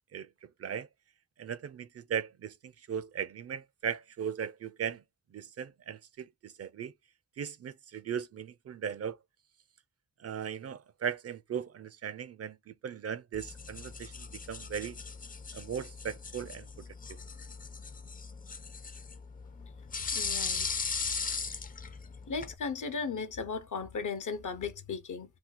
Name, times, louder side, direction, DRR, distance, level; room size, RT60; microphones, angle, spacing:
voice 1, 0.1-0.9 1.4-5.0 5.3-6.9 7.4-9.2 10.2-15.0 15.5-17.2, right 8 dB, 50° right, 0.4 m, -38 dB
sound 1, 13.3-22.5, left 5 dB, 30° left, 0.4 m, -38 dB
voice 2, 20.1-20.7 22.3-25.4, left 5 dB, 75° left, 0.8 m, -36 dB
2.7 x 2.3 x 3.7 m
cardioid pair, 70°, 31 cm